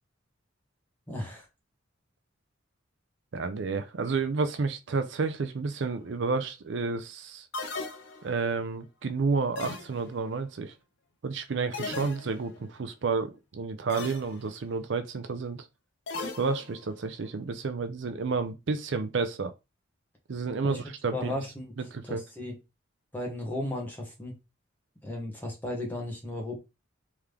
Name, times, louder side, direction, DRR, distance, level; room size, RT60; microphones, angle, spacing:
voice 1, 1.1-1.4 20.6-20.8 21.1-21.6 22.0-22.5 23.1-24.4 25.0-26.6, left 1 dB, 10° left, 1.3 m, -35 dB
voice 2, 3.3-7.5 8.2-10.7 11.2-15.6 16.4-19.5 20.3-21.3 21.8-22.2, right 4 dB, 60° right, 0.5 m, -30 dB
sound 1, 7.5-8.5 9.6-10.3 11.7-12.6 13.9-14.4 16.1-16.9, left 3 dB, 60° left, 0.7 m, -38 dB
3.6 x 3.1 x 3.4 m
head